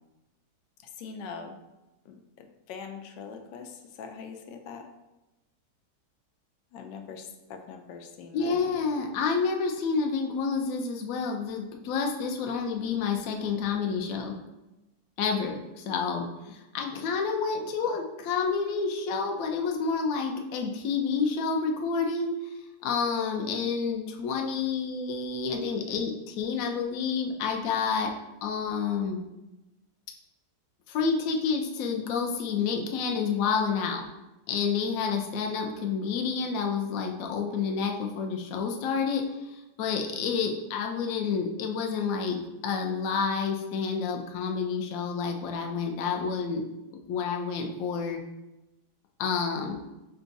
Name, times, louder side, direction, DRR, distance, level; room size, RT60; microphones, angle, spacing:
voice 1, 1.0-1.6 2.1-4.9 6.7-8.7, left 5 dB, 90° left, 5 dB, 1.2 m, -42 dB
voice 2, 8.3-14.3 15.2-22.3 22.8-28.1 28.4-29.2 30.9-34.0 34.5-46.6 47.1-48.2 49.2-49.8, left 5 dB, 65° left, 2 dB, 0.9 m, -29 dB
5.3 x 2.3 x 3.9 m, 1.0 s
omnidirectional pair, 1.9 m